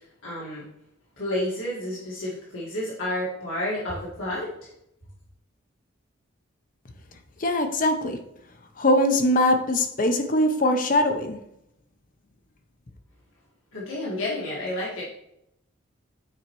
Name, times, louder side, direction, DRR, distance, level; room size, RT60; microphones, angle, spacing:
voice 1, 0.2-0.7 1.2-4.5 13.7-15.0, left 1 dB, 75° left, -6 dB, 1.6 m, -30 dB
voice 2, 7.4-8.2 8.8-11.4, left 1 dB, 40° left, 6 dB, 0.6 m, -22 dB
8.9 x 4.2 x 3.0 m, 0.79 s
head